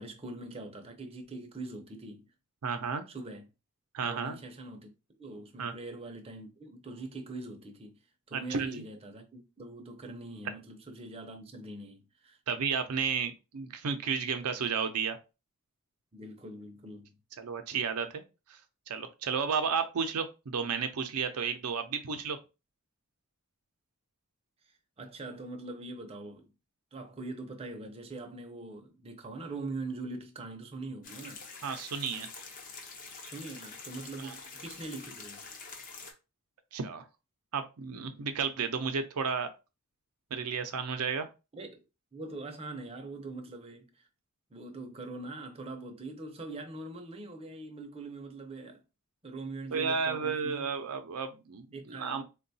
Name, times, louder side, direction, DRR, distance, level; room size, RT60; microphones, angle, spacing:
voice 1, 0.0-2.3 3.1-3.4 4.0-4.9 5.2-8.0 8.3-12.4 16.1-17.1 25.0-26.5 26.9-31.4 33.2-35.5 41.5-41.8 42.1-44.1 44.5-48.8 49.2-50.7 51.7-52.2, right 2 dB, 25° right, 0.5 m, -42 dB
voice 2, 2.6-3.0 3.9-4.4 5.6-5.7 8.3-8.8 12.5-15.2 17.4-18.2 18.5-18.6 18.9-22.4 31.6-32.3 34.2-34.3 36.7-37.1 37.5-39.5 40.3-41.3 49.7-52.2, right 6 dB, 90° right, 0.5 m, -32 dB
sound 1, 31.0-36.1, left 4 dB, 40° left, 0.6 m, -46 dB
3.7 x 2.2 x 2.6 m
head